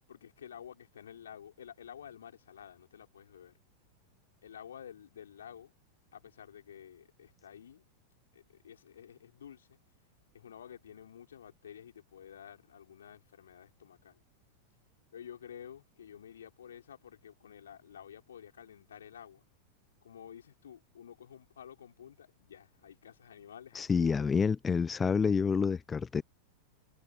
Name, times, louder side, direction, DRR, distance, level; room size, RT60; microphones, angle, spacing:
voice 1, 0.1-3.5 4.4-5.8 6.1-7.8 8.3-9.8 10.3-14.2 15.1-19.4 20.0-24.3, left 9 dB, 65° left, 5.9 m, -51 dB
voice 2, 23.7-26.2, left 5 dB, 15° left, 0.9 m, -28 dB
figure-of-eight pair, 90°, 0 cm